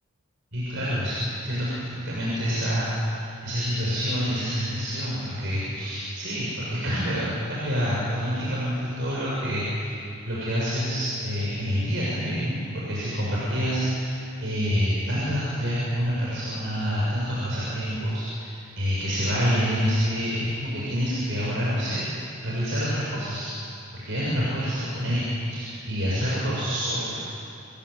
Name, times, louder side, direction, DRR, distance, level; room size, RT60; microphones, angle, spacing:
voice 1, 0.5-1.2 1.4-10.0 10.2-14.1 14.4-22.1 22.4-23.5 23.9-27.2, equal, 55° right, -7 dB, 7.1 m, -27 dB
29.0 x 22.0 x 8.5 m, 2.7 s
head